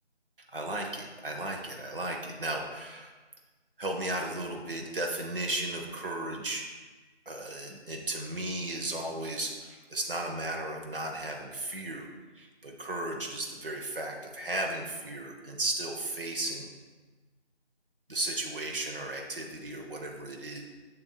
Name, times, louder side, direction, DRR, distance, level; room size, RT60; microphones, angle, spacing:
voice 1, 0.5-3.1 3.8-6.6 7.3-12.1 12.3-16.7 18.1-20.6, right 1 dB, 50° right, 1 dB, 0.7 m, -35 dB
6.8 x 6.7 x 2.2 m, 1.3 s
figure-of-eight pair, 165°, 34 cm